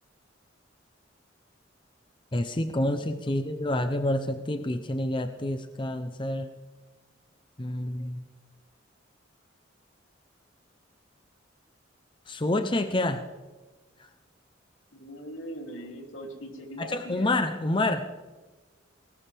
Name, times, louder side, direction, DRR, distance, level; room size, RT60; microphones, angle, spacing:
voice 1, 2.3-6.5 7.6-8.3 12.3-13.2 14.0-14.1 16.8-18.1, left 1 dB, 25° left, 8 dB, 0.7 m, -28 dB
voice 2, 14.9-17.3, equal, 85° left, 1 dB, 3.0 m, -41 dB
19.5 x 18.5 x 3.5 m, 1.2 s
head